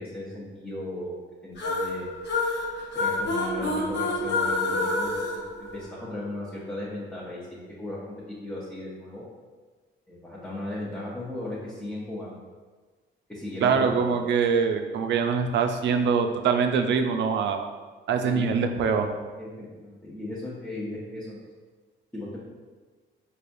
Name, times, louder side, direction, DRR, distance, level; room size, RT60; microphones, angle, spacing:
voice 1, 0.0-2.1 2.9-5.1 5.7-8.0 8.4-9.2 10.1-12.4 13.3-14.1 18.2-18.5 19.4-21.4 22.1-22.4, left 1 dB, 5° left, -8 dB, 0.7 m, -36 dB
sound 1, 1.6-6.3, left 2 dB, 60° left, 0.8 m, -28 dB
voice 2, 13.6-17.6 18.1-19.1, right 6 dB, 65° right, 6 dB, 0.4 m, -24 dB
4.8 x 2.3 x 2.6 m, 1.4 s
cardioid pair, 90°, 20 cm